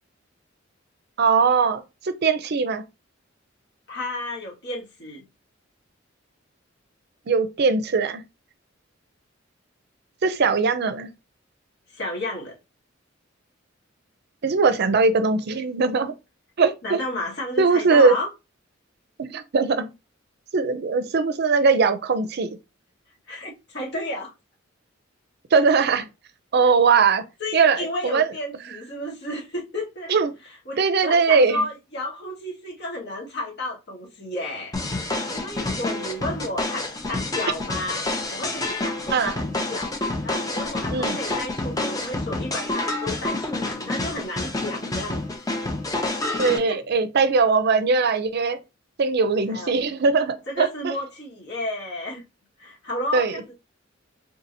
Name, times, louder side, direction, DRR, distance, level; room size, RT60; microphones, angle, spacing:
voice 1, 1.2-1.8 2.2-2.8 7.3-8.2 10.2-11.1 14.4-16.1 16.6-17.0 17.6-18.1 19.2-19.9 20.5-22.5 25.5-26.0 26.5-27.2 27.5-28.3 30.1-30.3 30.8-31.6 39.1-39.3 40.9-41.2 46.4-48.6 49.0-50.9 53.1-53.3, right 4 dB, 55° right, 0.5 m, -20 dB
voice 2, 3.9-5.2 11.9-12.5 16.8-18.3 23.3-24.3 26.6-26.7 27.4-30.1 30.6-34.8 35.3-40.0 40.2-45.2 46.7-46.8 49.5-49.7 50.5-52.2 52.6-53.5, left 1 dB, 60° left, 1.6 m, -32 dB
sound 1, 34.7-46.6, left 2 dB, 20° left, 0.6 m, -28 dB
3.6 x 2.8 x 2.7 m
head